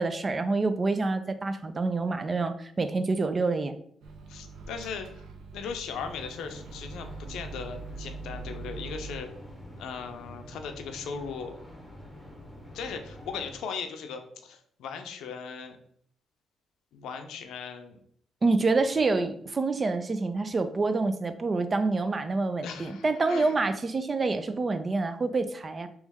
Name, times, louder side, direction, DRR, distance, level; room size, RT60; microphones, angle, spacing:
voice 1, 0.0-3.8 18.4-25.9, right 3 dB, 30° right, 10 dB, 0.4 m, -27 dB
Microwave oven, 4.0-9.2, right 4 dB, 80° right, 0.6 m, -43 dB
voice 2, 4.3-5.2 5.5-9.3 9.8-11.5 12.7-15.8 16.9-18.0 18.8-19.0 22.6-23.5, left 6 dB, 80° left, 6 dB, 0.5 m, -38 dB
sound 1, 5.9-13.6, left 1 dB, 5° left, 1.0 m, -47 dB
3.1 x 3.1 x 3.5 m, 0.64 s
cardioid pair, 90°, 0 cm